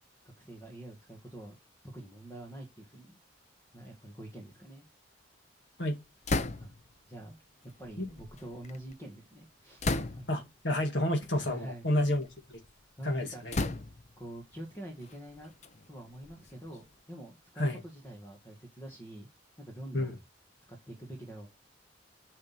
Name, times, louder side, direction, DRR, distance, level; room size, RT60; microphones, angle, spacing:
voice 1, 0.2-1.6 1.9-3.2 3.7-4.9 6.6-6.7 7.1-7.4 7.6-9.9 10.1-10.5 11.4-11.9 13.0-13.4 14.2-15.5 15.9-19.3 19.6-20.2 20.7-21.5, right 1 dB, 15° left, 1.9 m, -46 dB
sound 1, 6.2-6.9 7.8-8.9 9.8-10.5 11.3-11.5 12.0-12.7 13.5-14.2 15.0-16.9, left 2 dB, 35° left, 0.6 m, -35 dB
voice 2, 10.3-12.6 13.0-13.6 17.6-17.8 19.9-20.1, left 1 dB, 65° left, 1.9 m, -30 dB
9.8 x 5.2 x 4.3 m
head